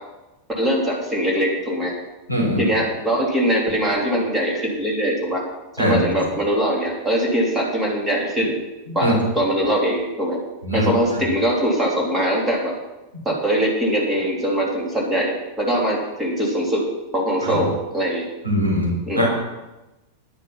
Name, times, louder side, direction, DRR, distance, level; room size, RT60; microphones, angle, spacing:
voice 1, 0.6-1.9 2.6-5.4 5.7-8.6 8.9-10.4 10.7-12.7 13.2-16.8 17.1-18.3 19.1-19.2, equal, 10° right, -2 dB, 3.2 m, -22 dB
voice 2, 2.3-2.6 5.8-6.0 8.9-9.1 10.6-10.9 17.5-17.6 18.4-19.3, equal, 90° right, -3 dB, 3.5 m, -21 dB
9.9 x 9.6 x 5.8 m, 1.0 s
figure-of-eight pair, 90°, 0 cm